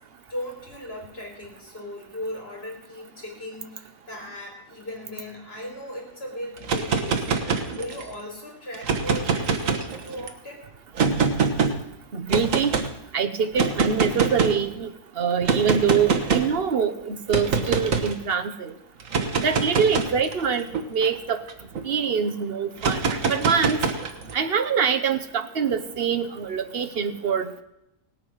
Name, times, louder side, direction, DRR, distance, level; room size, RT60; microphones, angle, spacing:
voice 1, 0.3-10.6, left 1 dB, 45° left, 0 dB, 4.3 m, -37 dB
sound 1, 6.6-8.1 8.7-10.3 11.0-11.7 12.3-12.9 13.5-14.6 15.5-16.5 17.3-18.1 19.0-21.8 22.8-24.3, right 5 dB, 75° right, 1.6 m, -24 dB
voice 2, 12.1-12.7 13.1-14.9 15.2-18.7 19.4-21.4 21.8-23.8 24.3-27.6, right 6 dB, 50° right, 9 dB, 1.2 m, -24 dB
17.5 x 8.8 x 6.3 m, 0.86 s
omnidirectional pair, 1.4 m